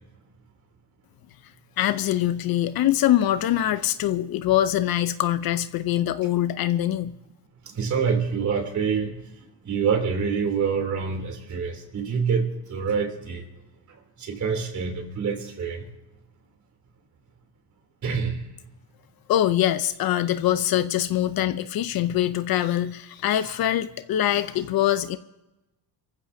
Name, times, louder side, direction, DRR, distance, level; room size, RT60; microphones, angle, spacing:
voice 1, 1.8-7.2 19.3-25.2, left 12 dB, 55° left, 0.8 m, -23 dB
voice 2, 7.6-13.4 13.9-15.8 18.0-18.5 23.4-23.5, right 6 dB, 40° right, 3.3 m, -27 dB
29.0 x 15.0 x 2.8 m
cardioid pair, 145°, 42 cm